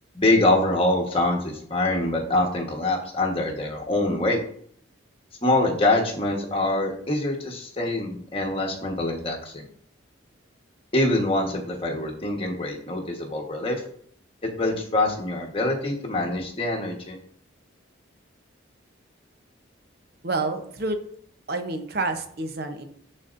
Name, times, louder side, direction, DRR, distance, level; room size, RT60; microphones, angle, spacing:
voice 1, 0.1-4.4 5.4-9.6 10.9-13.8 14.6-17.2, left 2 dB, 25° left, 0 dB, 1.2 m, -24 dB
voice 2, 20.2-21.0 21.5-22.8, right 2 dB, 50° right, 7 dB, 0.8 m, -28 dB
12.5 x 4.2 x 2.5 m, 0.63 s
head